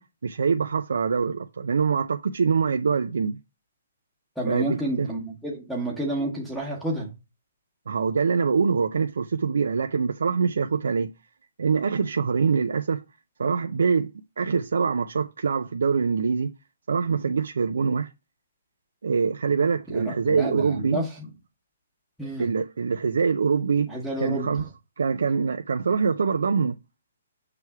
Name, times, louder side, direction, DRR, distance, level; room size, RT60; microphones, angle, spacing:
voice 1, 0.0-3.4 4.5-5.1 7.9-11.1 11.6-13.0 13.4-16.5 16.9-18.1 19.0-21.0 22.4-23.9 24.2-24.7 25.0-26.8, right 5 dB, 80° right, 0.5 m, -24 dB
voice 2, 4.4-7.1 19.9-21.2 22.2-22.5 23.9-24.7, right 1 dB, ahead, 1.1 m, -30 dB
6.9 x 3.3 x 4.6 m
hypercardioid pair, 175°, 0 cm